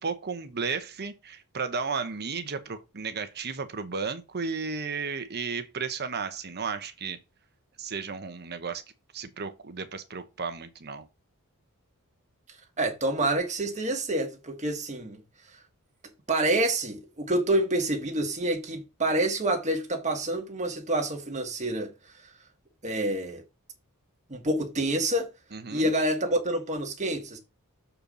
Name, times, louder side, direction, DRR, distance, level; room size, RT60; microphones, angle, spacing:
voice 1, 0.0-7.2 7.8-8.8 9.1-11.1 25.5-25.9, right 5 dB, 50° right, 1.0 m, -34 dB
voice 2, 12.8-15.2 16.3-21.9 22.8-23.4 24.3-25.3 25.7-27.4, right 1 dB, 35° right, 1.5 m, -27 dB
6.9 x 4.4 x 5.1 m
head